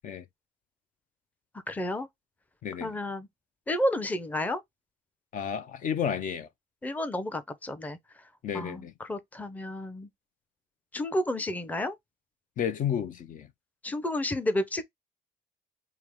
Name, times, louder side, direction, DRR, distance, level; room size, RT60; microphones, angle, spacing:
voice 1, 1.7-2.1 2.8-3.3 3.7-4.6 6.8-8.2 8.5-10.1 10.9-12.0 13.8-14.8, left 1 dB, 10° left, 0.6 m, -31 dB
voice 2, 2.6-2.9 5.3-6.5 8.4-8.9 12.6-13.5, left 8 dB, 50° left, 0.6 m, -31 dB
4.7 x 2.0 x 3.5 m
cardioid pair, 110°, 17 cm